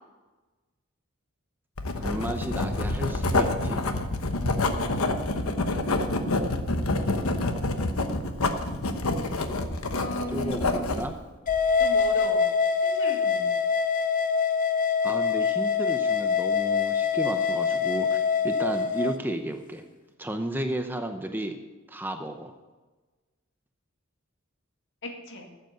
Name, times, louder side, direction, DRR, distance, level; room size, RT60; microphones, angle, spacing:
Writing, 1.8-11.1, left 2 dB, 85° left, 1.1 m, -27 dB
voice 1, 2.0-3.8 10.3-11.1 15.0-19.8 20.2-21.6 21.9-22.5, right 1 dB, 10° right, 5 dB, 0.7 m, -33 dB
voice 2, 9.9-10.9 11.8-12.5 12.8-13.5 25.0-25.4, left 1 dB, 60° left, 2 dB, 2.2 m, -36 dB
sound 1, 11.5-19.1, left 6 dB, 40° left, 0.7 m, -24 dB
14.0 x 7.9 x 6.7 m, 1.2 s
head